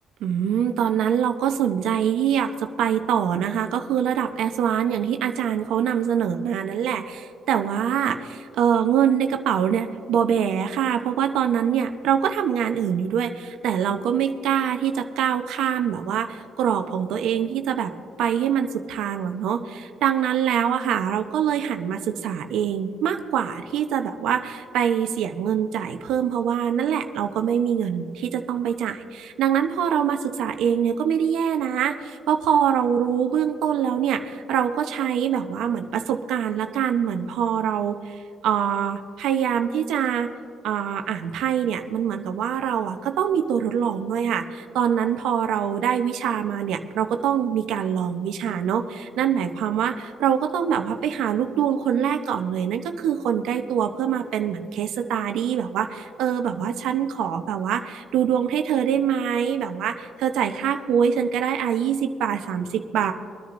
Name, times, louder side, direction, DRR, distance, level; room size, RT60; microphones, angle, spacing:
voice 1, 0.2-17.9 18.2-40.3 40.6-63.1, right 8 dB, 75° right, 6 dB, 0.8 m, -24 dB
25.0 x 10.0 x 2.6 m, 2.2 s
cardioid pair, 90°, 0 cm